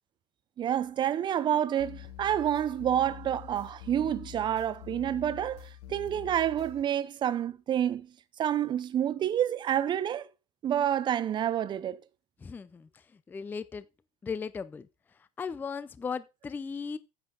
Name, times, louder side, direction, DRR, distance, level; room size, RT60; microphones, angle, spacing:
voice 1, 0.6-8.1 8.4-10.3 10.6-12.0, right 10 dB, 25° right, 0.7 m, -28 dB
sound 1, 1.8-6.8, left 11 dB, 80° left, 1.9 m, -46 dB
voice 2, 12.4-13.9 14.2-14.9 15.2-17.0, left 5 dB, 10° left, 0.4 m, -37 dB
9.9 x 8.3 x 3.8 m
cardioid pair, 160°, 19 cm